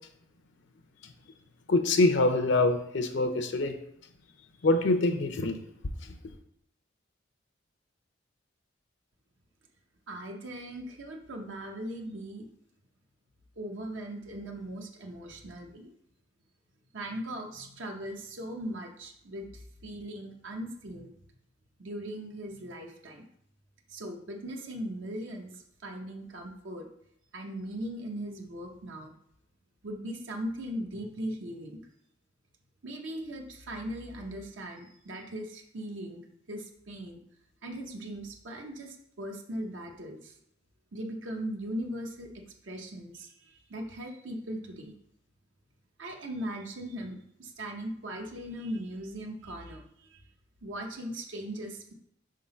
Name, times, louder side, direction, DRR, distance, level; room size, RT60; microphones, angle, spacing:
voice 1, 1.7-3.8 4.6-5.6, left 2 dB, 70° left, 7 dB, 0.6 m, -25 dB
voice 2, 10.1-12.5 13.6-15.9 16.9-21.1 21.8-23.3 23.9-26.9 27.3-29.2 29.8-31.9 32.8-37.2 37.6-40.4 40.9-44.9 46.0-50.2 50.6-51.9, right 1 dB, 70° right, 2 dB, 0.8 m, -39 dB
4.7 x 3.7 x 5.5 m, 0.71 s
head